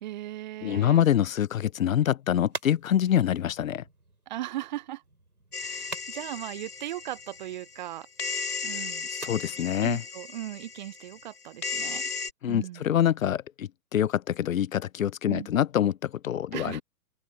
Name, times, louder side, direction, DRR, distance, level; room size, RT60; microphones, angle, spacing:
voice 1, 0.0-1.0 4.3-5.0 5.6-8.1 8.6-9.1 9.8-12.0 12.5-12.9 15.3-15.5 16.5-16.8, right 14 dB, 30° right, 0.8 m, -38 dB
voice 2, 0.6-3.8 9.1-10.0 12.4-16.8, left 10 dB, 60° left, 0.7 m, -25 dB
sound 1, 1.6-11.4, right 2 dB, 85° right, 7.8 m, -47 dB
sound 2, 5.5-7.9 8.2-12.3, left 5 dB, 80° left, 1.3 m, -36 dB
open air
figure-of-eight pair, 115°, 45 cm